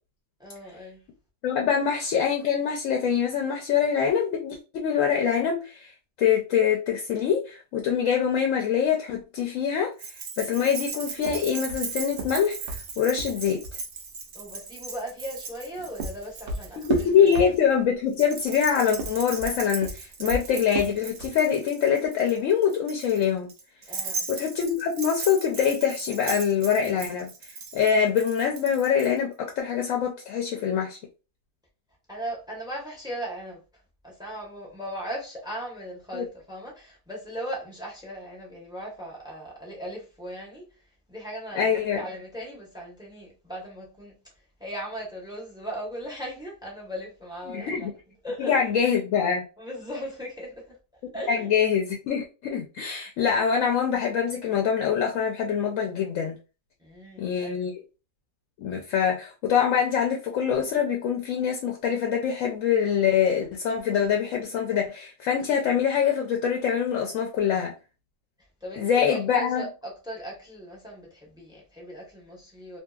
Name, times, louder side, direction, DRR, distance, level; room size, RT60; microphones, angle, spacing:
voice 1, 0.4-1.0 14.3-17.4 23.9-24.3 32.1-33.6 34.0-40.7 41.1-44.1 44.6-47.9 48.2-48.7 49.6-51.5 56.8-57.8 68.6-72.8, equal, 5° right, 0.5 m, -38 dB
voice 2, 1.4-5.9 6.2-9.9 10.4-13.6 16.8-23.5 24.3-27.3 27.7-31.0 36.1-36.2 41.6-42.0 47.5-47.9 48.5-49.4 51.3-56.4 57.2-57.7 58.6-67.7 68.8-69.6, left 7 dB, 70° left, 0.8 m, -24 dB
Keys jangling, 10.0-17.4 18.1-29.1, right 5 dB, 65° right, 1.0 m, -37 dB
sound 1, 11.2-13.8 15.5-18.0 18.8-21.5, right 3 dB, 85° right, 0.5 m, -34 dB
2.7 x 2.7 x 2.3 m
omnidirectional pair, 1.7 m